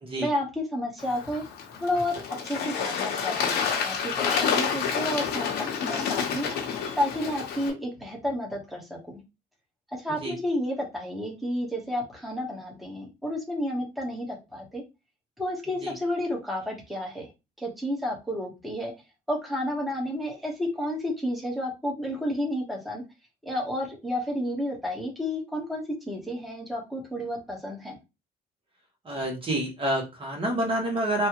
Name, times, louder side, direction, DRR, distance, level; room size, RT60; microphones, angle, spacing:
voice 1, 0.2-1.4 1.8-5.5 5.8-6.5 6.9-9.2 9.9-14.8 15.4-17.3 17.6-18.9 19.3-23.0 23.4-28.0, left 1 dB, ahead, -1 dB, 1.1 m, -31 dB
Bird / Water, 1.0-7.7, left 6 dB, 75° left, 1.0 m, -29 dB
voice 2, 29.0-31.3, right 1 dB, 30° right, 1 dB, 1.1 m, -28 dB
3.2 x 2.3 x 2.9 m, 0.25 s
cardioid pair, 110°, 17 cm